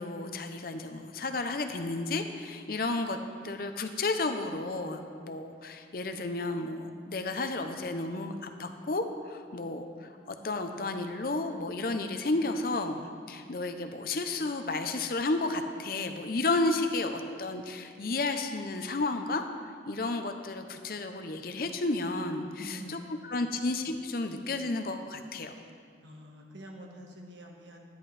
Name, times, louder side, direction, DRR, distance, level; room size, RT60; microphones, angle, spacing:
voice 1, 0.0-3.2 3.4-19.4 19.9-25.5, left 2 dB, 50° left, 6 dB, 0.7 m, -32 dB
voice 2, 22.5-23.6 26.0-27.8, equal, 85° right, 0 dB, 1.5 m, -47 dB
13.0 x 10.5 x 3.3 m, 2.2 s
head